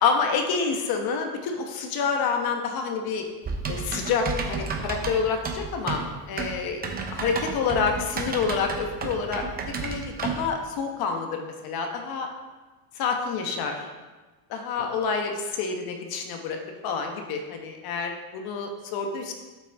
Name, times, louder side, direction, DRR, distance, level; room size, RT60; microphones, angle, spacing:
voice 1, 0.0-3.2 3.7-6.8 7.1-9.4 9.8-12.3 13.0-13.8 14.5-16.6 16.8-19.3, left 5 dB, 50° left, 3 dB, 1.2 m, -28 dB
Typing, 3.4-10.5, right 4 dB, 20° right, 0.7 m, -32 dB
7.9 x 5.9 x 3.6 m, 1.3 s
cardioid pair, 140°, 45 cm